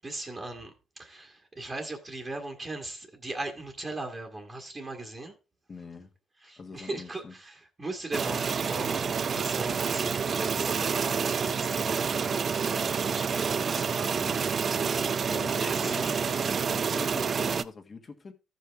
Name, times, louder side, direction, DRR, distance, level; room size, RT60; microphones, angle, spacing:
voice 1, 0.0-5.3 6.4-12.4 12.7-14.2 15.5-16.0, right 2 dB, 30° right, 1.5 m, -39 dB
voice 2, 5.7-6.1 6.6-7.3 13.9-14.4 15.3-18.3, left 4 dB, 40° left, 1.5 m, -43 dB
sound 1, 8.1-17.6, right 6 dB, 45° right, 0.4 m, -28 dB
14.0 x 5.5 x 3.4 m
cardioid pair, 90°, 0 cm